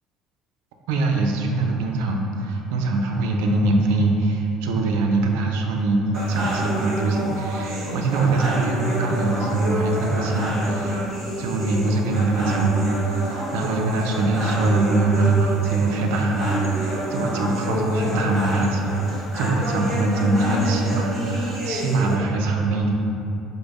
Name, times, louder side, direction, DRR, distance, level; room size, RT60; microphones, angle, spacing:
voice 1, 0.9-11.0 11.4-22.9, right 2 dB, 85° right, 1 dB, 0.3 m, -23 dB
sound 1, 6.1-22.2, equal, 45° right, 1.2 m, -28 dB
5.0 x 2.1 x 2.3 m, 2.7 s
supercardioid pair, 105°, 0 cm